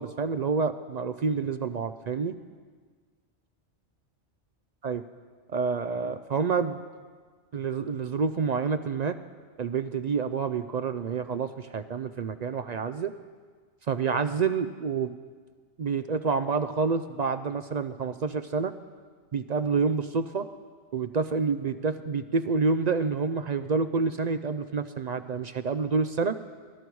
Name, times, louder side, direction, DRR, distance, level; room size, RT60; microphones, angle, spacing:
voice 1, 0.0-2.3 4.8-5.0 5.5-6.8 7.5-9.2 9.6-13.1 13.9-15.1 15.8-18.7 19.3-20.5 20.9-26.4, right 5 dB, 55° right, 9 dB, 0.4 m, -28 dB
20.5 x 11.0 x 4.7 m, 1.5 s
omnidirectional pair, 1.2 m